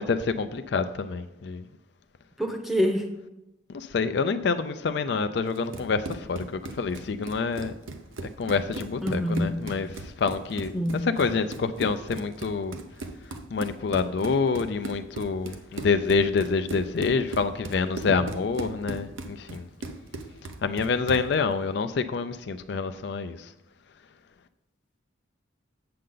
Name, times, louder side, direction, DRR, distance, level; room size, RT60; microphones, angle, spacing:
voice 1, 0.0-1.6 3.7-7.7 8.4-10.7 11.2-12.8 13.5-19.7 20.6-23.5, left 4 dB, 60° left, 0.4 m, -27 dB
voice 2, 2.4-3.1 9.0-9.6 10.7-11.0 18.1-18.2, equal, ahead, 0.7 m, -26 dB
Run, 5.5-21.3, right 2 dB, 85° right, 0.8 m, -38 dB
7.7 x 7.5 x 3.9 m
head